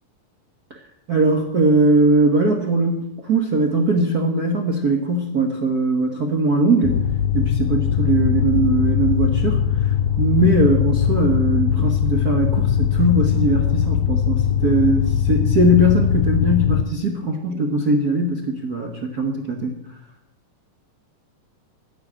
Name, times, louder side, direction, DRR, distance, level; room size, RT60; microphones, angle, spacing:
voice 1, 1.1-7.0 7.3-9.9 10.2-19.7, right 1 dB, 80° right, 3 dB, 0.8 m, -20 dB
sound 1, 6.8-16.8, left 9 dB, 80° left, 1.8 m, -20 dB
11.5 x 10.5 x 8.7 m, 0.83 s
omnidirectional pair, 3.8 m